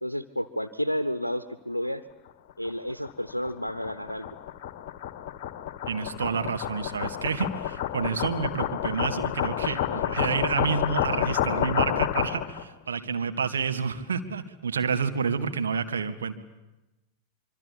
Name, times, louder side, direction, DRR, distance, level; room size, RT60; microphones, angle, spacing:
voice 1, 0.0-2.0 2.6-4.3 9.6-10.0 12.9-13.3, equal, 85° left, 11 dB, 0.8 m, -32 dB
sound 1, 2.7-12.6, left 11 dB, 45° left, 1.3 m, -30 dB
voice 2, 5.9-16.4, right 6 dB, 70° right, 8 dB, 1.8 m, -29 dB
25.0 x 24.0 x 8.7 m, 1.0 s
figure-of-eight pair, 90°, 0 cm